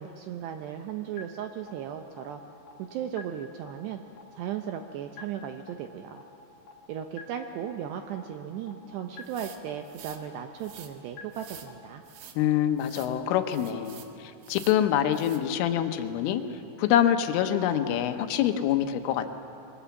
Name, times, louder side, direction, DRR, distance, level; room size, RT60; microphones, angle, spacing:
voice 1, 0.0-2.4 2.8-4.0 4.3-6.2 6.9-12.0, right 9 dB, 80° right, 5 dB, 2.4 m, -36 dB
sound 1, 1.2-1.3 1.7-1.8 2.2-2.3 2.7-2.8 3.2-3.3 3.7-3.8 4.2-4.3 4.7-4.8 5.2-5.3 5.7-5.8 6.2-6.3 6.7-6.8 7.2-7.3 7.7-7.8 8.2-8.3 8.7-8.8 9.2-9.3 9.7-9.8 10.2-10.3 10.7-10.8 11.2-11.3 11.7-11.8, left 7 dB, 50° left, 2.8 m, -44 dB
sound 2, 9.2-10.2 10.6-10.9 11.3-11.7 12.0-12.4 12.8-13.1 13.5-14.1 14.4-14.8 15.1-15.4, right 9 dB, 65° right, 3.1 m, -47 dB
voice 2, 12.4-16.4 16.8-19.4, left 10 dB, 80° left, 7 dB, 3.5 m, -25 dB
25.0 x 22.0 x 7.2 m, 2.8 s
omnidirectional pair, 5.8 m